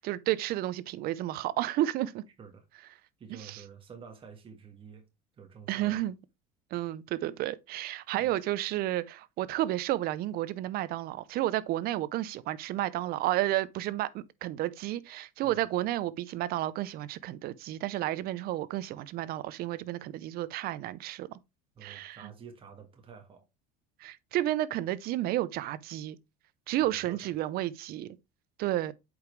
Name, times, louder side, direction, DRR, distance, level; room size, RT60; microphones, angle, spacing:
voice 1, 0.0-2.2 3.3-3.6 5.7-6.2 6.7-21.4 21.8-22.3 24.0-26.2 26.7-28.2 28.6-28.9, right 14 dB, 55° right, 0.7 m, -31 dB
voice 2, 3.2-5.1 5.4-6.0 8.2-8.3 15.4-15.6 21.7-23.4 26.8-27.3, right 6 dB, 30° right, 1.4 m, -49 dB
8.0 x 5.2 x 3.2 m
supercardioid pair, 115°, 19 cm